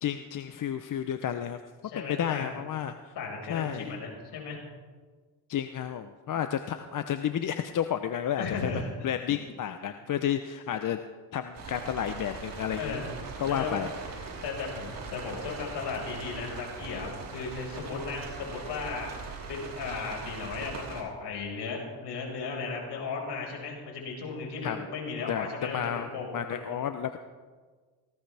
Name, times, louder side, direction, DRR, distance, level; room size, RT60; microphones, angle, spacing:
voice 1, 0.0-1.6 1.9-3.1 3.5-4.0 5.5-11.0 11.3-13.0 13.4-14.4 24.6-24.9 25.3-27.2, left 9 dB, 45° left, 9 dB, 0.8 m, -32 dB
voice 2, 1.8-2.5 3.1-4.6 8.4-8.9 12.7-13.1 13.5-13.9 14.4-19.1 19.5-26.8, left 4 dB, 70° left, -1 dB, 5.3 m, -36 dB
sound 1, 11.5-21.0, right 4 dB, 50° right, 4.0 m, -41 dB
18.5 x 16.5 x 3.4 m, 1.5 s
supercardioid pair, 80°, 42 cm